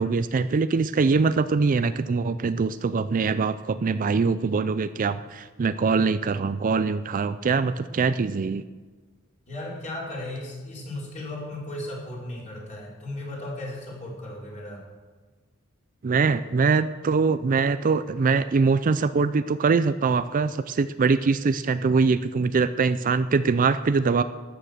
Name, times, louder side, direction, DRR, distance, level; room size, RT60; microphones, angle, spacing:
voice 1, 0.0-8.6 16.0-24.2, right 4 dB, 40° right, 13 dB, 0.4 m, -23 dB
voice 2, 9.5-14.8, left 1 dB, 35° left, -5 dB, 4.7 m, -36 dB
13.5 x 9.3 x 6.7 m, 1.4 s
head